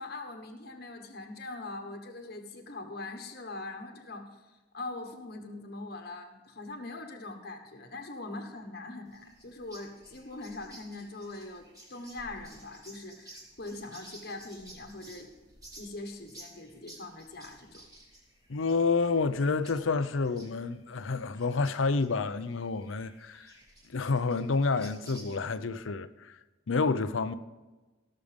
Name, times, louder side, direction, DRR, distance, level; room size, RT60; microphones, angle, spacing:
voice 1, 0.0-15.3 15.8-17.8, left 2 dB, 50° left, 1.3 m, -42 dB
sound 1, 9.1-25.5, right 1 dB, 20° right, 2.7 m, -54 dB
voice 2, 18.5-23.5 23.9-26.4 26.7-27.3, left 4 dB, 80° left, 0.6 m, -29 dB
17.5 x 6.7 x 5.2 m
head